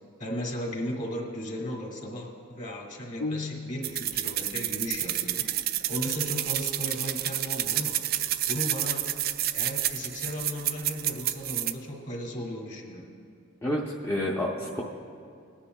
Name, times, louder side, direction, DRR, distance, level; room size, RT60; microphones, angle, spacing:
voice 1, 0.2-5.4 5.9-8.0 8.5-9.2 9.5-13.1, equal, 40° left, 0 dB, 1.9 m, -35 dB
sound 1, 3.2-4.2, left 3 dB, 85° left, 0.5 m, -35 dB
sound 2, 3.8-11.7, right 12 dB, 45° right, 0.3 m, -30 dB
voice 2, 13.6-14.8, left 1 dB, 15° left, -4 dB, 0.6 m, -29 dB
20.5 x 9.9 x 2.2 m, 2.3 s
head